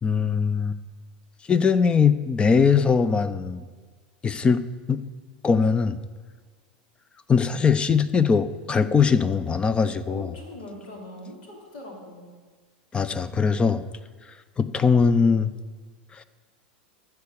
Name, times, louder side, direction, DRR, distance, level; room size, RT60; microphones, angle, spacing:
voice 1, 0.0-0.8 1.5-3.6 4.2-4.6 4.9-5.0 5.4-6.0 7.3-10.3 12.9-13.8 14.6-15.5 16.1-16.2, left 5 dB, 20° left, 14 dB, 0.5 m, -21 dB
voice 2, 10.1-12.3, left 1 dB, 80° left, 0 dB, 3.1 m, -41 dB
14.0 x 4.8 x 6.7 m, 1.5 s
hypercardioid pair, 110°, 5 cm